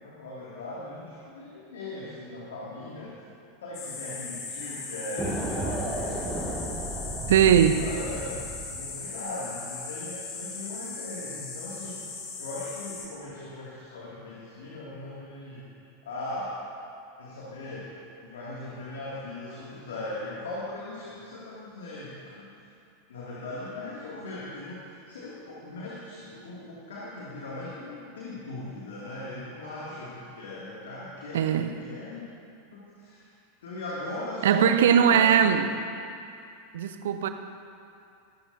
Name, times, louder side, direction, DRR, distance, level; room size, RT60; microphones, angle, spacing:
voice 1, 0.0-3.2 3.6-6.7 7.6-12.0 12.4-15.7 16.0-16.5 17.2-17.9 18.2-22.5 23.1-32.3 32.7-33.3 33.6-35.5, left 2 dB, 65° left, -6 dB, 2.3 m, -39 dB
sound 1, 3.7-13.1, left 4 dB, 40° left, 3.2 m, -38 dB
sound 2, 5.2-8.9, right 1 dB, 5° right, 2.1 m, -33 dB
voice 2, 7.3-7.9 31.3-31.7 34.4-35.7 36.7-37.3, right 8 dB, 60° right, 9 dB, 0.8 m, -20 dB
22.5 x 13.0 x 2.7 m, 2.5 s
figure-of-eight pair, 85°, 0 cm